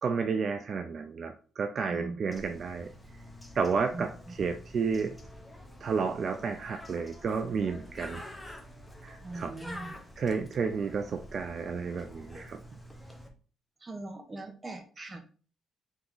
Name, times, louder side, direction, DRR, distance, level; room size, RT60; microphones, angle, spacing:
voice 1, 0.0-2.9 3.5-5.1 5.8-8.2 9.0-12.6, right 5 dB, 50° right, 8 dB, 0.3 m, -32 dB
voice 2, 1.9-2.2 3.9-4.1 9.2-9.9 13.8-15.2, right 2 dB, 25° right, 4 dB, 1.0 m, -40 dB
Bird, 2.3-13.3, left 1 dB, 10° left, 0.9 m, -48 dB
3.5 x 2.9 x 3.8 m, 0.40 s
cardioid pair, 90°, 0 cm